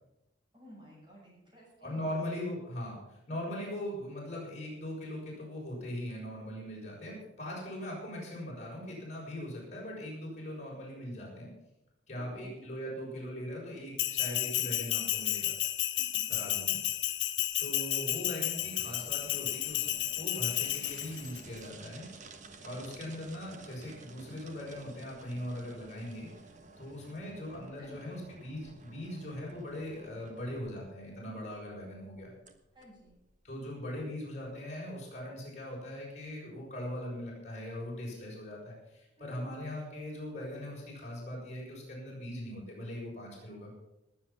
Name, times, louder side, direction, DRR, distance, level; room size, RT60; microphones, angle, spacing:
voice 1, 0.5-2.1 12.1-12.6 16.0-16.3 27.8-28.1 32.7-33.2 39.2-39.5, equal, 25° right, -4 dB, 6.9 m, -55 dB
voice 2, 1.8-11.5 12.1-15.5 16.3-16.8 17.6-22.0 22.6-26.3 26.8-32.3 33.4-43.7, left 1 dB, 35° left, -4 dB, 6.8 m, -40 dB
Bell, 14.0-21.4, left 13 dB, 80° left, 1.1 m, -32 dB
sound 1, 16.6-33.6, right 3 dB, 40° right, 1.4 m, -54 dB
20.0 x 8.8 x 6.0 m, 0.91 s
head